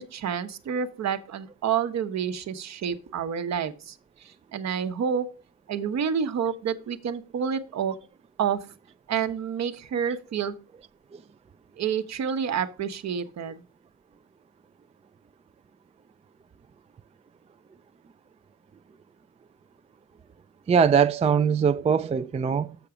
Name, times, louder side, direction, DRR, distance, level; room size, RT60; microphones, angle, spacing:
voice 1, 0.0-4.0 4.2-5.3 5.7-8.0 8.4-8.6 9.1-10.5 11.8-13.6, right 7 dB, 60° right, 1.0 m, -29 dB
voice 2, 20.7-22.8, right 6 dB, 20° right, 0.4 m, -22 dB
6.9 x 5.9 x 4.9 m
cardioid pair, 90°, 30 cm